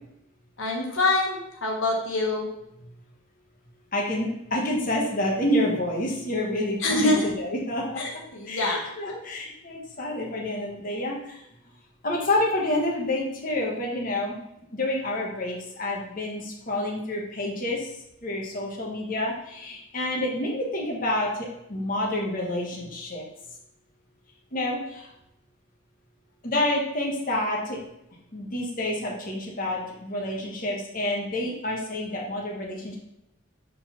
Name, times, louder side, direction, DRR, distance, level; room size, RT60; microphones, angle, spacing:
voice 1, 0.6-2.5 6.8-7.3 8.0-9.2, left 2 dB, 80° left, 0 dB, 1.2 m, -25 dB
voice 2, 3.9-8.0 8.5-11.4 12.0-14.4 14.7-17.9 18.2-23.2 24.5-25.1 26.4-27.8 28.3-33.0, left 1 dB, 45° left, -2 dB, 1.2 m, -28 dB
4.6 x 3.9 x 5.7 m, 0.83 s
head